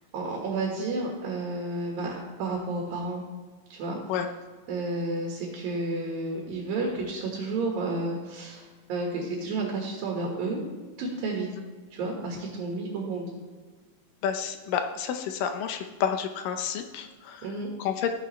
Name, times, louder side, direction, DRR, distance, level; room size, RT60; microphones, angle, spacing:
voice 1, 0.1-2.1 2.4-3.2 3.7-4.0 4.7-10.6 11.0-11.5 11.9-13.3 17.4-17.7, right 3 dB, 80° right, -1 dB, 3.4 m, -31 dB
voice 2, 14.2-18.1, left 8 dB, 80° left, 6 dB, 2.4 m, -30 dB
14.5 x 8.8 x 3.2 m, 1.4 s
omnidirectional pair, 4.0 m